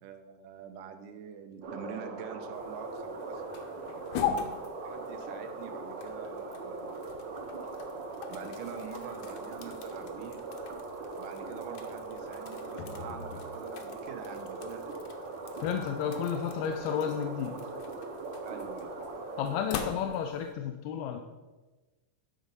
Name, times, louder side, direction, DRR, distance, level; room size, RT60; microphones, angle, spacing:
voice 1, 0.0-3.4 4.8-7.2 8.3-10.4 11.2-15.1 18.4-19.0, right 8 dB, 85° right, 7 dB, 2.3 m, -45 dB
sound 1, 1.6-19.7, right 3 dB, 65° right, 1.1 m, -40 dB
sound 2, 2.5-20.5, left 7 dB, 75° left, 1.8 m, -42 dB
voice 2, 15.6-17.6 19.4-21.2, left 8 dB, 90° left, 4 dB, 2.2 m, -32 dB
10.0 x 4.0 x 5.3 m, 1.2 s
omnidirectional pair, 3.8 m